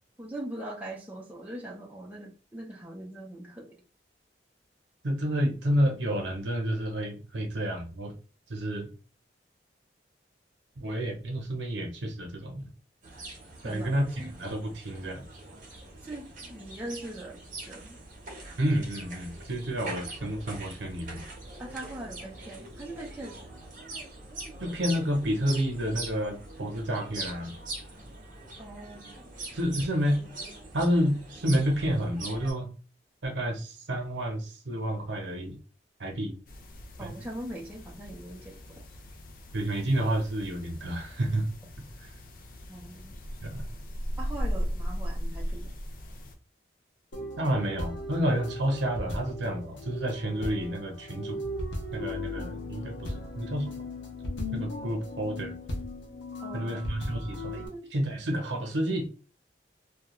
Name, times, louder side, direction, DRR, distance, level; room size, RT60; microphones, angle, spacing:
voice 1, 0.2-3.8 13.6-14.3 16.0-18.0 21.6-23.4 28.6-29.3 37.0-38.8 42.7-43.2 44.2-45.7 56.4-56.9 57.7-57.9, right 1 dB, 10° right, 0.5 m, -41 dB
voice 2, 5.0-8.1 8.5-8.9 10.8-12.7 13.6-15.2 18.6-21.2 24.6-27.5 29.5-30.2 30.7-32.7 33.2-35.6 36.0-36.3 37.0-37.1 39.5-41.5 43.4-43.6 47.4-51.4 51.9-53.8 54.5-55.5 56.5-59.1, equal, 85° right, 0.7 m, -30 dB
sound 1, 13.0-32.5, right 2 dB, 45° right, 0.7 m, -43 dB
sound 2, 36.5-46.4, equal, 50° left, 0.4 m, -37 dB
sound 3, 47.1-57.7, left 1 dB, 85° left, 0.7 m, -37 dB
2.3 x 2.2 x 3.0 m
head